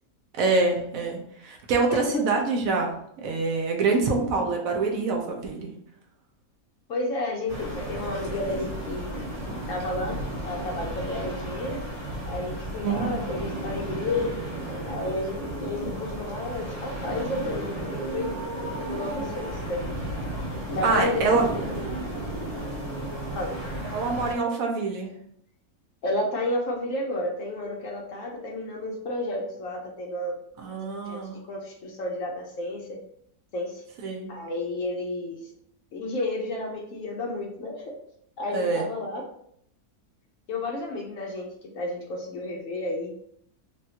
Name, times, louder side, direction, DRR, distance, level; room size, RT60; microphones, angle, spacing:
voice 1, 0.4-2.9 3.2-5.7 12.8-13.1 20.8-21.4 23.9-25.1 30.6-31.4 34.0-34.3 38.5-38.9, right 3 dB, 70° right, 1 dB, 1.0 m, -25 dB
voice 2, 1.9-2.3 6.9-9.1 9.7-11.8 12.2-14.4 14.8-18.4 18.9-20.0 20.7-21.5 23.3-23.5 26.0-30.4 31.1-33.0 33.5-33.8 34.3-35.4 35.9-37.9 38.4-39.3 40.5-41.5 41.7-43.1, left 2 dB, 70° left, 0 dB, 0.9 m, -31 dB
sound 1, 7.5-24.3, right 1 dB, 30° right, 0.9 m, -33 dB
3.4 x 2.2 x 2.8 m, 0.71 s
omnidirectional pair, 1.6 m